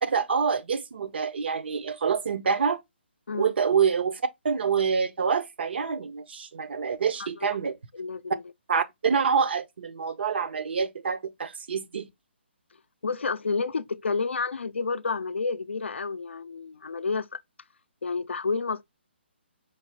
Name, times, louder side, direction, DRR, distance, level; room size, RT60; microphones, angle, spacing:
voice 1, 0.0-2.8 3.3-7.8 8.7-12.1, right 6 dB, 60° right, 0.7 m, -26 dB
voice 2, 7.2-7.6 7.9-8.4 13.0-17.4 18.0-18.8, left 4 dB, 85° left, 0.4 m, -30 dB
4.6 x 2.8 x 2.9 m
hypercardioid pair, 150°, 6 cm